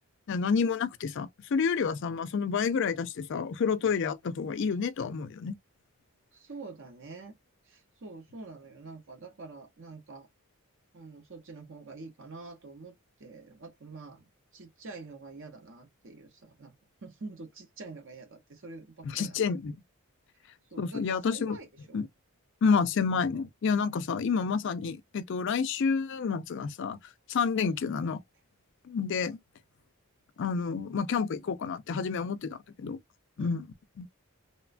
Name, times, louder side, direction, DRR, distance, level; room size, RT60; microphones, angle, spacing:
voice 1, 0.3-5.6 19.0-19.7 20.8-21.6 21.9-22.1 22.6-27.0 27.3-28.2 28.8-29.4 30.4-33.0 33.4-33.7 34.0-34.1, left 5 dB, 55° left, 0.4 m, -29 dB
voice 2, 6.3-7.4 7.6-10.3 10.9-16.7 17.0-19.4 20.7-22.0 33.4-33.6, right 3 dB, 60° right, 0.7 m, -46 dB
3.0 x 2.2 x 2.4 m
head